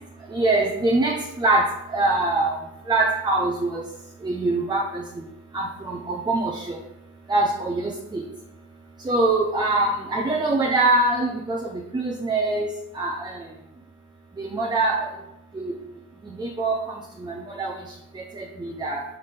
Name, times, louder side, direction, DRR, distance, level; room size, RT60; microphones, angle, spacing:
voice 1, 0.3-2.6 2.9-3.8 4.2-5.0 5.5-6.8 7.3-8.2 9.1-11.6 11.9-12.7 13.0-13.3 14.4-15.0 15.6-15.7 16.4-16.8 17.2-17.7 18.4-19.0, right 2 dB, 15° right, 1 dB, 0.6 m, -23 dB
5.8 x 5.6 x 3.3 m, 0.87 s
cardioid pair, 110°, 31 cm